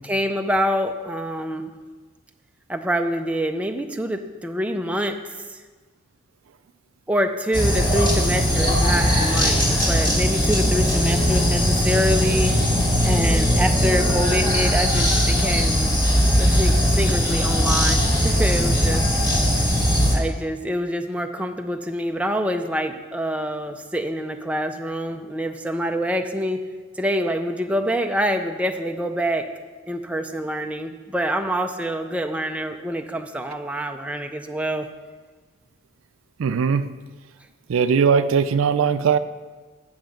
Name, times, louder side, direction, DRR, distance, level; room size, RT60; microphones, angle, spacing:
voice 1, 0.0-1.7 2.7-5.2 5.5-5.6 7.1-12.5 13.0-16.0 16.4-19.1 20.1-26.6 27.0-29.5 29.9-34.9, equal, 5° right, 5 dB, 0.4 m, -26 dB
sound 1, 7.5-20.2, equal, 20° left, 1.7 m, -19 dB
voice 2, 36.4-36.9 37.7-39.2, right 6 dB, 80° right, 12 dB, 0.4 m, -19 dB
7.9 x 5.5 x 7.5 m, 1.4 s
head